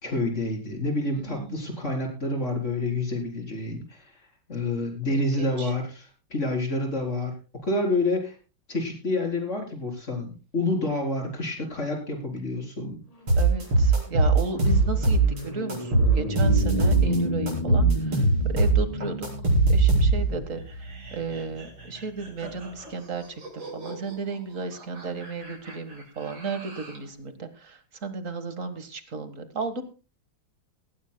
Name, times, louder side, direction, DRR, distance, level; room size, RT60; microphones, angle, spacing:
voice 1, 0.0-4.2 4.5-7.3 7.6-8.4 8.7-13.0, left 2 dB, 35° left, 3 dB, 4.4 m, -28 dB
voice 2, 1.3-1.8 5.1-5.7 13.4-20.8 21.1-29.8, right 4 dB, 40° right, 10 dB, 1.8 m, -34 dB
sound 1, 13.2-22.8, left 1 dB, 15° left, 2.4 m, -33 dB
sound 2, 13.3-15.4 15.7-17.2 17.5-20.4, right 3 dB, 85° right, 6.2 m, -20 dB
sound 3, 20.5-27.1, right 2 dB, 65° right, 5.3 m, -45 dB
19.0 x 15.5 x 2.2 m, 0.32 s
omnidirectional pair, 2.3 m